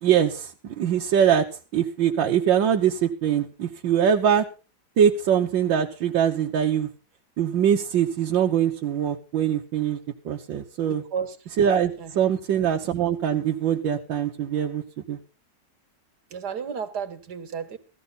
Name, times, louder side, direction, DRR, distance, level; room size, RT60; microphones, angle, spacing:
voice 1, 0.0-1.5 1.7-4.4 5.0-6.9 7.4-10.0 10.2-11.0 11.6-14.8 15.1-15.2, right 9 dB, 85° right, 2 dB, 1.8 m, -22 dB
voice 2, 10.9-11.4 12.0-12.1 16.3-17.8, right 7 dB, 60° right, 8 dB, 2.1 m, -32 dB
16.0 x 14.0 x 4.0 m, 0.33 s
omnidirectional pair, 2.0 m